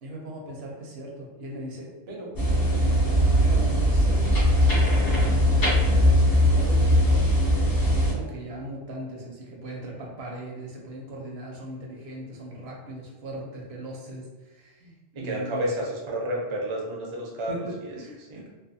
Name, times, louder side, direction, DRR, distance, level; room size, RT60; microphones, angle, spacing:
voice 1, 0.0-15.6 17.5-18.6, right 1 dB, 80° right, -2 dB, 0.9 m, -39 dB
sound 1, 2.4-8.1, equal, 35° left, 0.4 m, -20 dB
voice 2, 15.1-17.5 17.8-18.0 18.3-18.4, right 1 dB, 45° right, -2 dB, 0.4 m, -30 dB
2.5 x 2.1 x 2.6 m, 1.2 s
omnidirectional pair, 1.0 m